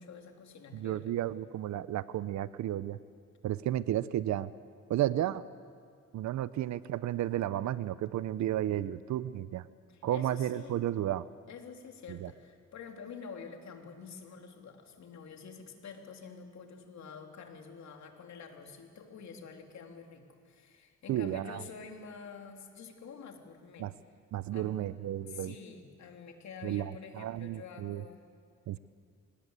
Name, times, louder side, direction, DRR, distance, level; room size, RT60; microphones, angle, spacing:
voice 1, 0.0-1.2 9.9-10.8 11.5-23.9 24.5-24.8 25.3-28.2, left 5 dB, 65° left, 3 dB, 3.2 m, -48 dB
voice 2, 0.7-3.0 3.4-4.5 4.9-5.4 6.1-9.7 10.0-11.3 12.1-12.3 21.1-21.6 23.8-23.9 24.3-25.5 26.6-28.0 28.7-28.8, right 12 dB, 70° right, 17 dB, 0.7 m, -33 dB
26.0 x 19.0 x 8.1 m, 2.1 s
cardioid pair, 90°, 30 cm